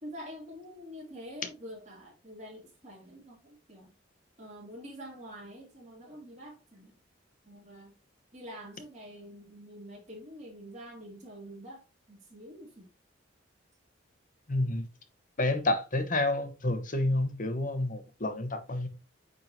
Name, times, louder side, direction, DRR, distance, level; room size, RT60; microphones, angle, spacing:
voice 1, 0.0-3.9 4.4-6.9 7.4-7.9 8.3-11.8 12.1-12.9, equal, 40° right, 3.0 m, -46 dB
voice 2, 14.5-14.9 15.4-18.9, left 2 dB, 45° left, 1.0 m, -29 dB
9.0 x 3.7 x 2.8 m
head